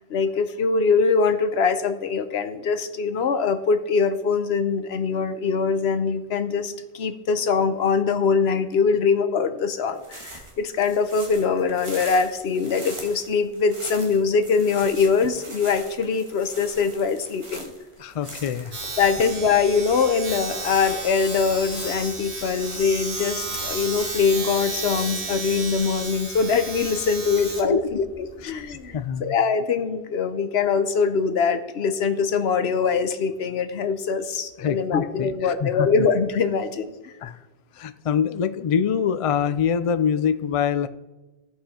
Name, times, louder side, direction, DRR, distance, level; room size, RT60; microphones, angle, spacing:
voice 1, 0.1-17.7 19.0-37.1, left 5 dB, 75° left, 10 dB, 1.0 m, -23 dB
sound 1, 9.9-24.2, right 1 dB, 30° right, 1.5 m, -42 dB
voice 2, 18.0-18.8 27.7-27.8 28.9-29.2 34.6-35.9 37.2-37.4 37.8-40.9, left 7 dB, 55° left, 12 dB, 0.4 m, -24 dB
Domestic sounds home sounds, 18.7-29.1, right 3 dB, 60° right, 1.8 m, -33 dB
16.0 x 5.6 x 4.3 m, 1.1 s
omnidirectional pair, 1.1 m